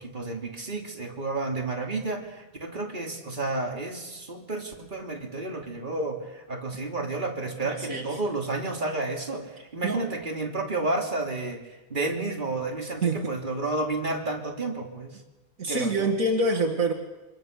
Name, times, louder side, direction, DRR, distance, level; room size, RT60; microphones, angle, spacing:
voice 1, 0.0-15.2 15.7-16.1, right 2 dB, 30° right, 1 dB, 3.2 m, -31 dB
voice 2, 7.6-8.1 9.8-10.0 13.0-13.3 15.6-16.9, right 2 dB, 65° right, 1 dB, 2.4 m, -26 dB
27.0 x 24.5 x 6.7 m, 1.1 s
omnidirectional pair, 1.5 m